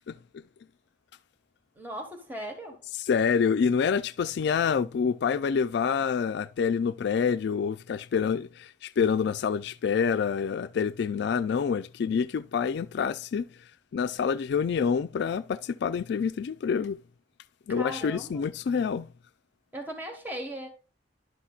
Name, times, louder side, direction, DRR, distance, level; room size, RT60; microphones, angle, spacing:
voice 1, 1.8-2.8 17.7-18.4 19.7-20.7, equal, 10° right, 1.5 m, -38 dB
voice 2, 3.0-13.5 13.9-17.0 17.7-19.1, left 6 dB, 65° left, 0.3 m, -27 dB
11.5 x 5.8 x 2.4 m
head